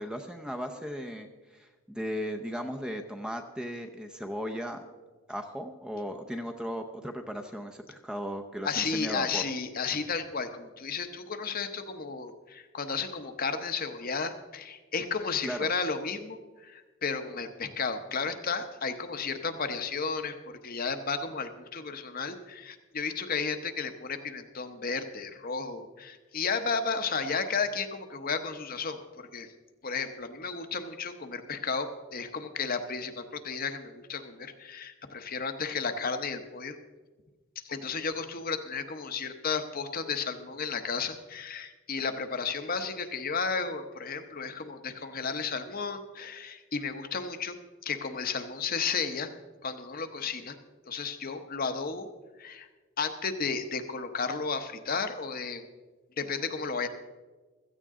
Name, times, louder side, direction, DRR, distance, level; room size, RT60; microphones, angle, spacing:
voice 1, 0.0-4.8 5.3-9.4 15.4-15.7, equal, 5° right, 4 dB, 0.7 m, -36 dB
voice 2, 8.6-29.5 29.8-36.8 37.6-47.5 47.8-49.3 49.6-50.6 50.9-52.1 52.4-52.7 53.0-55.6 56.2-56.9, left 5 dB, 40° left, 8 dB, 0.9 m, -33 dB
16.0 x 14.0 x 3.7 m, 1.3 s
head